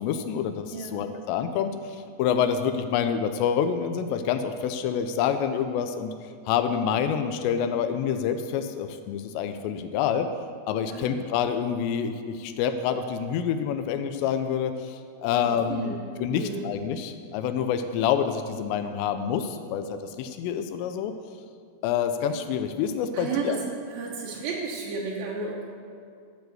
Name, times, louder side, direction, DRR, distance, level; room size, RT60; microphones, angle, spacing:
voice 1, 0.0-6.1 6.5-10.3 10.7-21.1 21.8-23.6, left 8 dB, 90° left, 8 dB, 2.5 m, -27 dB
voice 2, 0.7-1.0 10.9-11.1 15.4-16.0 16.3-16.6 23.1-23.6 23.9-25.6, right 4 dB, 85° right, -2 dB, 2.0 m, -33 dB
13.0 x 4.7 x 7.7 m, 2.2 s
omnidirectional pair, 5.5 m